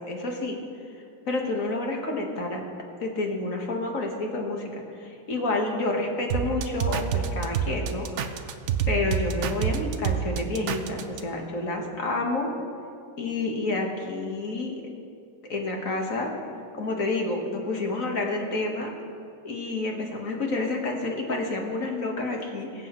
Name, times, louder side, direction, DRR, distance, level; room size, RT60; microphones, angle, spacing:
voice 1, 0.1-0.6 1.2-2.6 3.0-8.5 8.9-12.5 13.2-14.9 15.5-16.3 16.8-18.9 19.4-22.9, left 2 dB, 50° left, 1 dB, 1.7 m, -29 dB
sound 1, 6.3-11.2, right 8 dB, 75° right, 0.6 m, -27 dB
22.5 x 7.7 x 3.0 m, 2.4 s
omnidirectional pair, 1.9 m